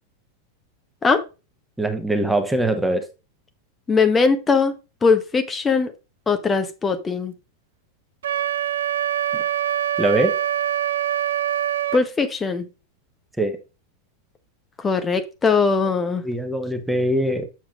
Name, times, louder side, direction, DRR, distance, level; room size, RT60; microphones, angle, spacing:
voice 1, 1.8-3.1 10.0-10.4 13.4-13.6 16.2-17.5, right 1 dB, 5° right, 1.2 m, -22 dB
voice 2, 3.9-4.7 5.0-5.9 6.3-7.3 11.9-12.7 14.8-16.2, left 4 dB, 15° left, 0.9 m, -20 dB
Wind instrument woodwind instrument, 8.2-12.0, right 10 dB, 65° right, 0.4 m, -24 dB
7.4 x 7.3 x 2.5 m
figure-of-eight pair, 90°, 0 cm